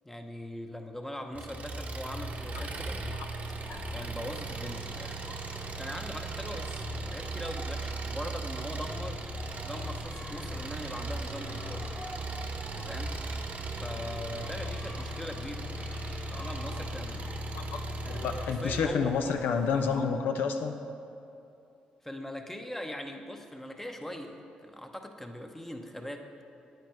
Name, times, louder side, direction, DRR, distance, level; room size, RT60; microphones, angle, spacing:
voice 1, 0.0-3.0 3.9-5.4 5.8-9.2 9.6-11.9 12.7-13.1 13.8-15.7 16.3-17.3 18.0-19.3 22.0-26.3, left 1 dB, 10° left, 4 dB, 0.9 m, -41 dB
Engine, 1.3-18.9, right 2 dB, 50° right, 0.9 m, -37 dB
sound 1, 3.4-20.0, left 1 dB, 40° left, 1.8 m, -48 dB
voice 2, 18.1-20.8, left 5 dB, 75° left, 6 dB, 0.5 m, -29 dB
9.1 x 8.9 x 3.1 m, 2.7 s
supercardioid pair, 55°, 3 cm